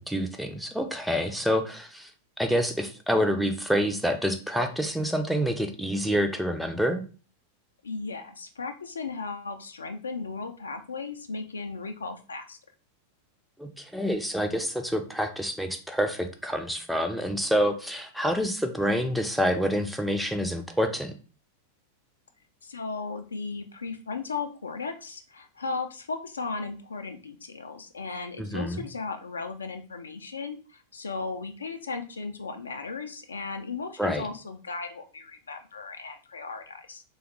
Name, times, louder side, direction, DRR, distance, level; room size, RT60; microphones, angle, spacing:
voice 1, 0.0-2.1 2.4-7.0 13.6-21.1 28.4-28.9 34.0-34.2, equal, ahead, 5 dB, 0.4 m, -27 dB
voice 2, 7.8-12.6 22.6-37.0, left 4 dB, 75° left, 7 dB, 0.4 m, -36 dB
3.4 x 2.3 x 3.1 m, 0.36 s
figure-of-eight pair, 90°, 0 cm